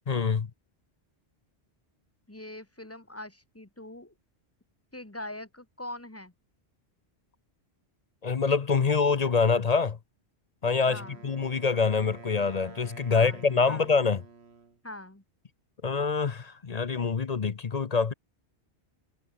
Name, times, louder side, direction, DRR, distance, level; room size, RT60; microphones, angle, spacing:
voice 1, 0.1-0.5 8.2-10.0 10.6-14.2 15.8-18.1, left 5 dB, 40° left, 0.8 m, -25 dB
voice 2, 2.3-4.1 4.9-6.3 10.9-11.2 13.1-13.4 13.7-13.9 14.8-15.2, left 1 dB, 15° left, 1.8 m, -42 dB
Wind instrument woodwind instrument, 10.6-14.8, right 4 dB, 75° right, 2.2 m, -49 dB
omnidirectional pair, 1.1 m